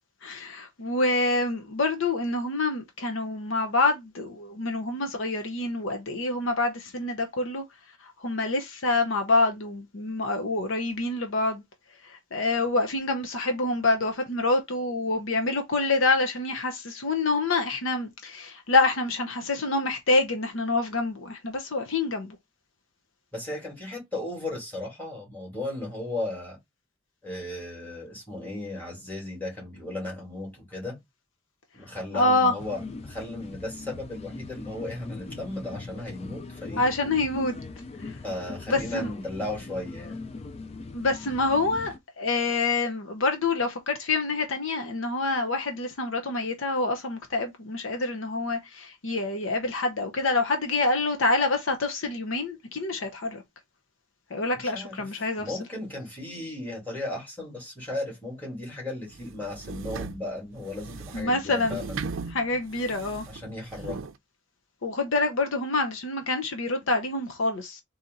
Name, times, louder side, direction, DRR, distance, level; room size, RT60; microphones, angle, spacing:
voice 1, 0.2-7.6 8.2-11.6 12.0-22.4 32.1-32.5 36.8-37.6 38.0-38.1 38.7-39.1 40.9-53.4 54.3-55.6 61.1-61.8 62.3-63.2 64.8-67.8, left 2 dB, 65° left, 0.8 m, -26 dB
voice 2, 23.3-26.6 27.2-31.0 31.7-36.8 38.2-40.2 54.6-62.0 63.3-64.0, left 2 dB, 10° left, 2.6 m, -35 dB
sound 1, 32.6-42.0, left 3 dB, 30° left, 0.4 m, -40 dB
sound 2, 59.1-64.2, right 4 dB, 65° right, 0.5 m, -38 dB
4.1 x 2.8 x 3.8 m
head